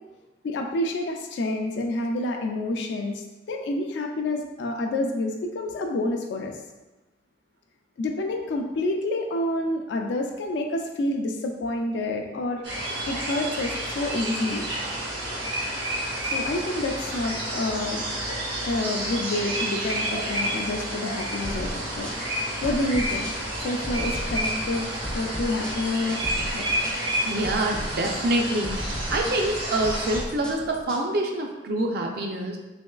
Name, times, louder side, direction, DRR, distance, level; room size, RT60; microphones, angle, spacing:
voice 1, 0.4-6.5 8.0-12.6 13.1-14.6 16.3-18.1 18.7-22.1 22.6-23.3 23.6-24.8 25.1-26.2 26.5-26.7, left 2 dB, 75° left, 3 dB, 0.3 m, -28 dB
sound 1, 12.6-30.2, right 1 dB, 75° right, 1.0 m, -30 dB
sound 2, 21.4-31.0, equal, 5° left, 0.4 m, -36 dB
voice 2, 27.3-28.8 29.1-32.6, right 1 dB, 60° right, 2 dB, 0.4 m, -26 dB
3.4 x 3.0 x 2.3 m, 1.1 s
head